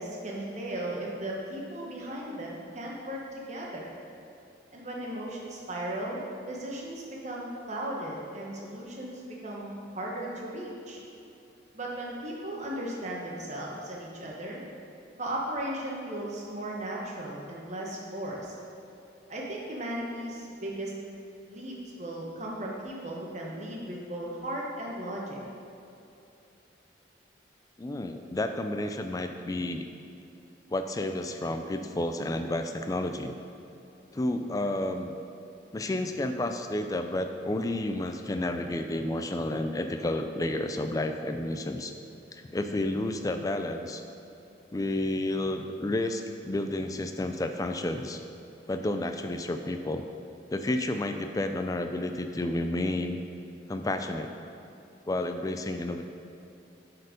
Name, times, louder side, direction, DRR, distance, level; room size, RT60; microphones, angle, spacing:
voice 1, 0.0-3.9 4.7-11.0 11.7-14.6 15.2-18.5 19.3-20.9 21.5-25.4, right 1 dB, 35° right, -3 dB, 1.1 m, -36 dB
voice 2, 27.8-29.8 30.7-33.3 34.1-35.1 35.7-41.9 42.3-44.0 44.7-48.2 48.7-50.0 50.5-53.2 53.7-54.3 55.1-56.0, left 1 dB, 20° left, 6 dB, 0.3 m, -31 dB
7.9 x 4.4 x 5.1 m, 2.8 s
head